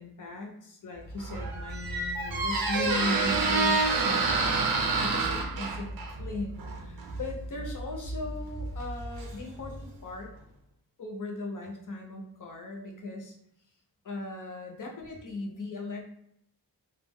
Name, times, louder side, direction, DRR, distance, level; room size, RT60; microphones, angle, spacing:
voice 1, 0.0-4.6 5.0-10.3 11.0-13.3 14.0-16.1, left 2 dB, 50° left, 1 dB, 0.6 m, -38 dB
Squeak, 1.1-9.8, right 3 dB, 60° right, 0.6 m, -29 dB
2.2 x 2.2 x 3.4 m, 0.72 s
wide cardioid pair, 130°, 41 cm